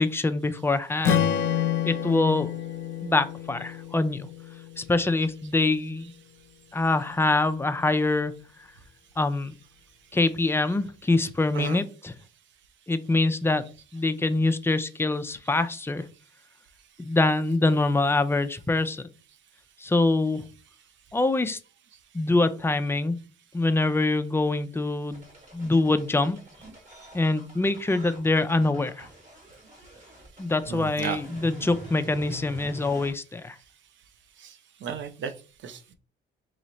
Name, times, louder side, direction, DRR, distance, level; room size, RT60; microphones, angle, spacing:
voice 1, 0.0-1.3 1.9-2.5 3.0-4.3 4.8-6.1 6.7-8.4 9.2-9.6 10.1-12.1 12.9-13.7 13.9-16.1 17.0-19.0 19.8-20.4 21.1-21.6 22.1-23.2 23.5-25.2 25.5-26.4 27.1-29.1 30.4-33.6, left 2 dB, 10° left, 10 dB, 0.4 m, -24 dB
Strum, 1.0-5.3, left 9 dB, 75° left, 0.6 m, -29 dB
voice 2, 10.4-10.8 11.5-11.8 13.8-14.1 15.2-15.4 15.7-15.8 17.4-17.6 21.9-22.0 30.5-31.2 31.5-31.7 32.0-32.1 34.4-35.9, right 7 dB, 70° right, 10 dB, 0.6 m, -37 dB
sound 1, 25.1-33.1, equal, 40° right, 1.8 m, -45 dB
3.1 x 3.1 x 3.9 m, 0.36 s
cardioid pair, 90°, 20 cm